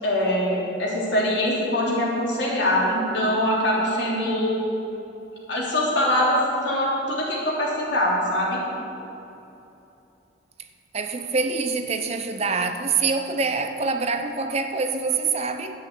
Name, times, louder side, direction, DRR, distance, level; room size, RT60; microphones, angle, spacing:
voice 1, 0.0-4.6 5.5-8.6, left 1 dB, 70° left, -4 dB, 3.4 m, -23 dB
voice 2, 10.9-15.7, right 4 dB, 35° right, 7 dB, 0.7 m, -25 dB
11.0 x 8.4 x 8.1 m, 2.9 s
head